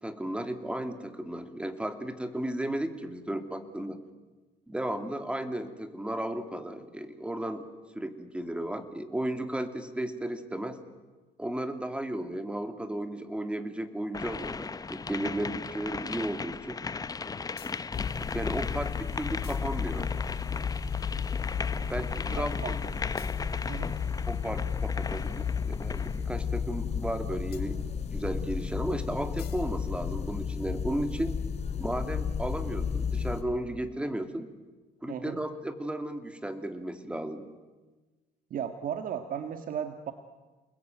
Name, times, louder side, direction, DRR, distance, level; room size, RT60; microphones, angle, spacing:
voice 1, 0.0-4.0 4.7-7.7 7.9-10.8 11.4-16.8 18.2-20.1 21.9-22.8 24.3-27.8 28.1-31.4 31.8-34.5 35.0-37.5, right 1 dB, 5° right, 8 dB, 2.5 m, -34 dB
sound 1, 14.1-26.2, left 4 dB, 20° left, 0.8 m, -37 dB
sound 2, 17.6-18.2 19.3-20.6 23.2-24.9 27.5-28.5 29.4-29.7 30.0-31.4, left 9 dB, 70° left, 2.5 m, -45 dB
sound 3, 17.9-33.4, left 6 dB, 40° left, 2.7 m, -33 dB
voice 2, 22.3-22.7 23.7-23.9 35.1-35.4 38.5-40.1, right 8 dB, 55° right, 7 dB, 1.7 m, -35 dB
29.0 x 20.5 x 9.2 m, 1.3 s
cardioid pair, 110°, 17 cm